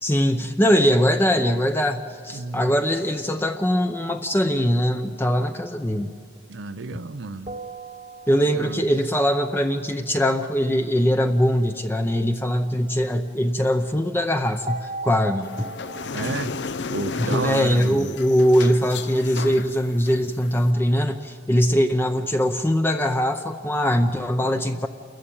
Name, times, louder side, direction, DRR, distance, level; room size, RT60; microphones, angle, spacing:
voice 1, 0.0-6.1 8.3-15.7 17.2-24.9, equal, 15° left, 0.6 m, -21 dB
voice 2, 2.3-2.7 6.5-7.6 8.5-8.8 16.1-16.5 16.9-18.2, right 3 dB, 90° right, 0.6 m, -31 dB
sound 1, 7.5-9.0 14.7-18.0, right 2 dB, 35° right, 1.0 m, -38 dB
sound 2, 15.4-20.7, left 4 dB, 70° left, 0.6 m, -33 dB
28.5 x 14.5 x 8.7 m
head